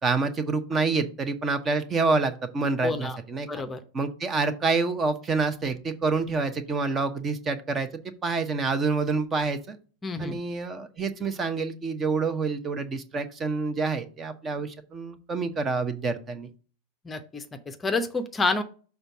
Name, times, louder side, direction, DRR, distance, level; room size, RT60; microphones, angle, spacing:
voice 1, 0.0-3.5 3.9-7.9 8.2-9.8 10.2-16.5, right 4 dB, 20° right, 10 dB, 0.9 m, -27 dB
voice 2, 2.8-3.2 3.5-3.8 10.0-10.4 17.0-18.6, left 3 dB, 15° left, 8 dB, 0.7 m, -28 dB
6.7 x 3.5 x 6.0 m, 0.39 s
figure-of-eight pair, 90°, 0 cm